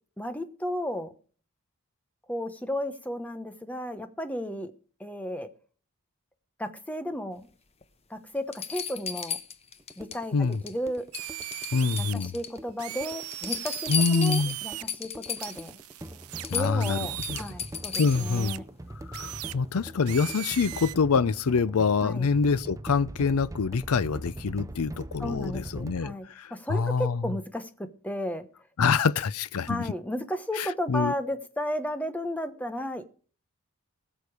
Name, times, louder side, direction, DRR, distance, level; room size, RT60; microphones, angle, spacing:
voice 1, 0.2-1.1 2.3-4.7 5.0-5.5 6.6-7.5 8.1-9.4 10.0-11.1 12.0-15.7 16.5-18.6 22.0-22.3 25.2-28.5 29.7-33.0, equal, 5° left, 1.0 m, -34 dB
sound 1, 7.8-7.9 8.5-10.2 10.5-10.9 11.1-12.6 13.0-15.7 16.1-16.2 16.4-18.3 20.0-20.1, left 7 dB, 30° left, 1.0 m, -35 dB
sound 2, 9.8-26.0, right 1 dB, 15° right, 0.5 m, -42 dB
sound 3, 11.1-12.1 12.8-14.8 15.4-17.5 17.9-18.6 19.1-19.5 20.0-20.9, right 16 dB, 80° right, 0.5 m, -38 dB
voice 2, 11.7-12.3 13.9-14.6 16.5-17.0 17.3-17.4 18.0-18.6 19.1-27.2 28.8-29.9 30.6-31.1, left 5 dB, 80° left, 0.5 m, -26 dB
20.5 x 6.9 x 4.8 m
head